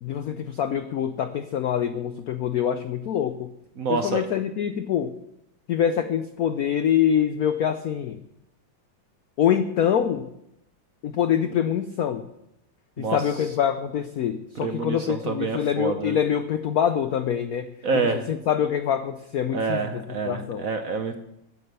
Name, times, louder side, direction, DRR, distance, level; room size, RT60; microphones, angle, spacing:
voice 1, 0.0-3.5 3.9-5.1 5.7-8.2 9.4-10.3 11.0-12.3 13.0-17.7 17.9-19.9 20.3-20.6, left 9 dB, 85° left, 10 dB, 0.8 m, -25 dB
voice 2, 3.8-4.3 13.0-13.2 14.6-16.2 17.8-18.2 19.5-21.2, right 4 dB, 60° right, 6 dB, 0.9 m, -27 dB
9.7 x 9.2 x 6.7 m, 0.81 s
omnidirectional pair, 2.3 m